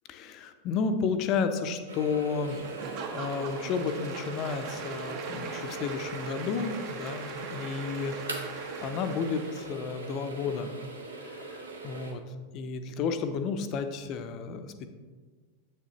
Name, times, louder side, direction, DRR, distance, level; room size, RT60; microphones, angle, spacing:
voice 1, 0.1-2.6 3.1-8.2 8.5-10.7 11.3-12.2 12.5-14.9, left 5 dB, 40° left, 8 dB, 0.5 m, -32 dB
sound 1, 1.9-12.1, right 3 dB, 75° right, 0.9 m, -40 dB
Applause / Crowd, 2.4-9.8, right 5 dB, 40° right, 0.8 m, -42 dB
7.3 x 6.4 x 2.9 m, 1.4 s
figure-of-eight pair, 90°, 0 cm